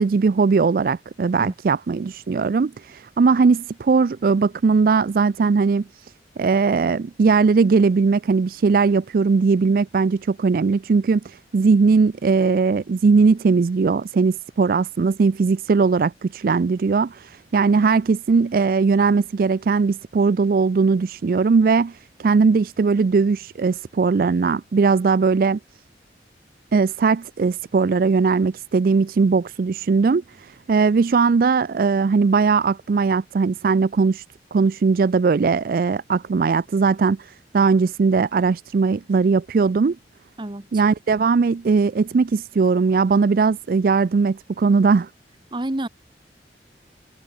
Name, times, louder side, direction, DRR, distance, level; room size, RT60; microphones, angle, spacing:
voice 1, 0.0-6.1 6.4-25.6 26.7-34.2 34.5-40.0 40.7-45.1, right 4 dB, 55° right, 0.4 m, -19 dB
voice 2, 45.5-45.9, right 1 dB, 25° right, 1.0 m, -28 dB
head